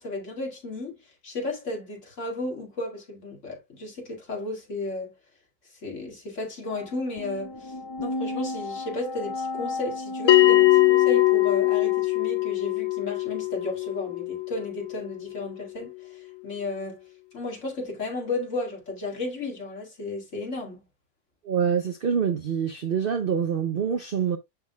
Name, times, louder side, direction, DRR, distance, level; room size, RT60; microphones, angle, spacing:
voice 1, 0.0-5.1 5.8-7.7 8.0-17.0 17.3-20.8, left 2 dB, 45° left, 2.4 m, -34 dB
sound 1, 6.7-12.0, left 2 dB, 30° left, 0.5 m, -34 dB
Bell, 10.3-15.3, left 17 dB, 75° left, 0.6 m, -21 dB
voice 2, 21.4-24.4, right 7 dB, 65° right, 0.5 m, -25 dB
11.0 x 3.8 x 2.2 m
omnidirectional pair, 1.8 m